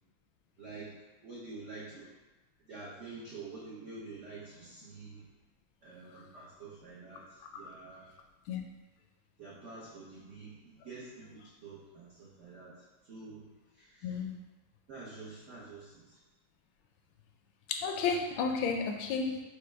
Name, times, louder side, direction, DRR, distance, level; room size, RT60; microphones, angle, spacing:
voice 1, 0.6-0.9 1.2-2.1 2.6-5.3 5.8-8.1 9.4-13.5 13.7-14.2 14.9-16.2, right 3 dB, 60° right, -7 dB, 0.8 m, -48 dB
voice 2, 14.0-14.3 17.7-19.4, left 5 dB, 80° left, 3 dB, 1.3 m, -32 dB
6.3 x 2.1 x 3.2 m, 1.1 s
omnidirectional pair, 2.2 m